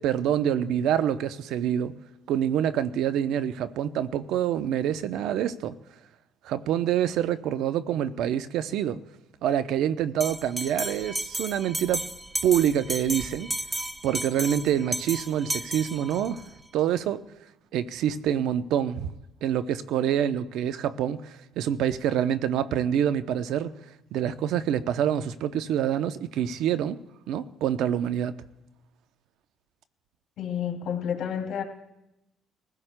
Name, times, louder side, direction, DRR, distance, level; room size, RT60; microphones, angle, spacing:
voice 1, 0.0-1.9 2.3-5.7 6.4-9.0 9.4-12.1 12.4-13.5 14.0-16.4 16.7-17.2 17.7-19.1 19.4-23.7 24.1-27.0 27.3-28.3, right 10 dB, 75° right, 0.6 m, -26 dB
Bell, 10.2-16.4, right 1 dB, 10° right, 0.6 m, -33 dB
voice 2, 30.4-31.6, left 8 dB, 65° left, 2.5 m, -30 dB
25.0 x 15.5 x 2.2 m
supercardioid pair, 80°, 0 cm